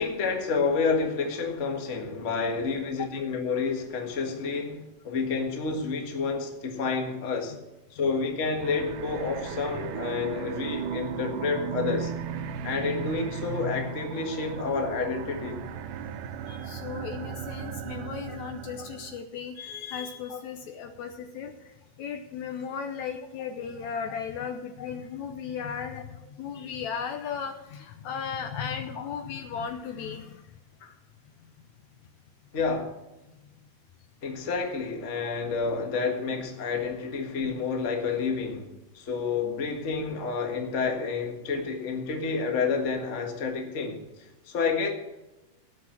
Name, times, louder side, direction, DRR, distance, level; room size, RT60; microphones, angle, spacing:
voice 1, 0.0-7.6 7.9-12.1 12.6-15.6 18.3-18.4 20.3-20.4 24.8-24.9 28.9-29.0 32.5-32.9 34.2-38.7 38.9-44.0 44.5-44.9, left 4 dB, 35° left, 1.3 m, -29 dB
sound 1, 8.6-19.2, right 7 dB, 90° right, 2.5 m, -36 dB
voice 2, 16.5-30.4 30.8-30.9, left 7 dB, 70° left, 2.0 m, -36 dB
18.0 x 6.1 x 5.9 m
omnidirectional pair, 3.7 m